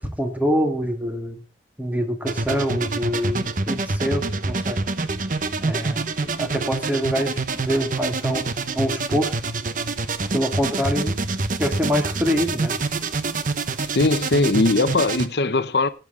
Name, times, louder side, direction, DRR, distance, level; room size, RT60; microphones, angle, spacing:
voice 1, 0.2-1.4 1.8-4.8 5.6-6.1 6.4-8.5 8.7-9.3 10.3-11.2 11.6-12.8, equal, 10° right, 1.8 m, -25 dB
sound 1, 2.3-15.3, right 3 dB, 50° right, 0.9 m, -26 dB
voice 2, 13.9-15.9, left 2 dB, 65° left, 0.8 m, -20 dB
17.0 x 9.1 x 3.7 m
head